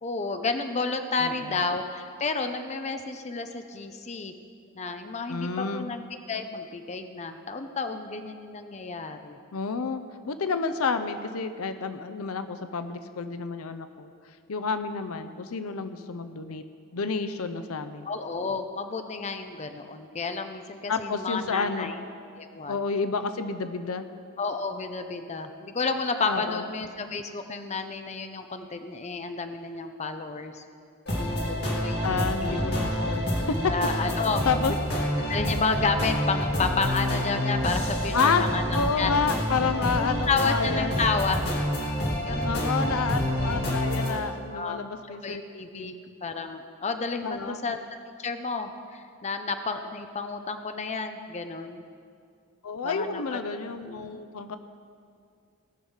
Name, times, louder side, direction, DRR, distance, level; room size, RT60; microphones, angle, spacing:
voice 1, 0.0-4.3 4.8-9.4 18.1-21.9 22.4-22.8 24.4-30.6 31.2-32.6 33.7-34.6 35.3-39.1 40.0-41.5 42.2-43.1 44.5-44.8 45.2-45.9 46.2-47.8 48.2-51.9 52.8-53.4 53.9-54.0, left 4 dB, 30° left, 7 dB, 0.6 m, -31 dB
voice 2, 1.2-1.6 5.3-5.9 9.5-16.6 16.9-18.1 20.9-21.9 22.7-24.0 26.3-26.6 32.0-33.7 34.0-34.7 38.1-38.4 38.7-40.9 42.4-45.4 45.7-45.9 47.2-47.8 52.6-54.6, left 5 dB, 75° left, 10 dB, 0.6 m, -30 dB
sound 1, 31.1-44.2, equal, 50° left, 2.1 m, -28 dB
18.0 x 6.4 x 5.6 m, 2.3 s
head